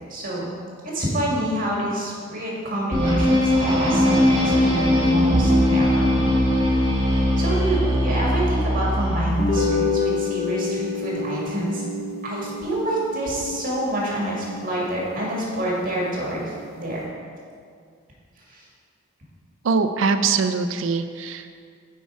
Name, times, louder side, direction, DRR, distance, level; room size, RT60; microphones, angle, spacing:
voice 1, 0.1-0.5 0.8-6.1 6.6-6.9 7.4-11.8 12.2-17.0 18.5-18.6, right 1 dB, 45° right, -4 dB, 1.9 m, -27 dB
sound 1, 2.9-9.4, left 1 dB, 25° right, 2.0 m, -20 dB
sound 2, 9.3-15.8, left 4 dB, 50° left, 0.9 m, -29 dB
voice 2, 19.6-21.7, right 4 dB, 65° right, 8 dB, 0.4 m, -23 dB
8.3 x 4.6 x 4.7 m, 2.1 s
head